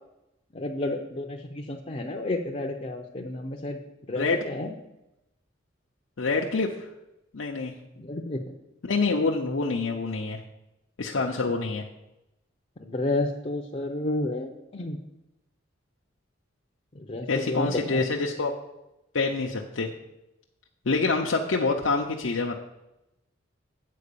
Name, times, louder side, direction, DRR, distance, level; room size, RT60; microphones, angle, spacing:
voice 1, 0.5-3.8 4.1-4.7 8.0-8.4 11.1-11.5 12.8-15.0 16.9-18.1, left 2 dB, 30° left, 0 dB, 0.6 m, -31 dB
voice 2, 6.2-6.9 7.3-7.7 8.8-10.4 11.0-11.8 17.3-18.5 19.1-19.9 20.9-22.6, left 3 dB, 75° left, 0 dB, 0.7 m, -26 dB
8.4 x 4.6 x 6.8 m, 0.91 s
head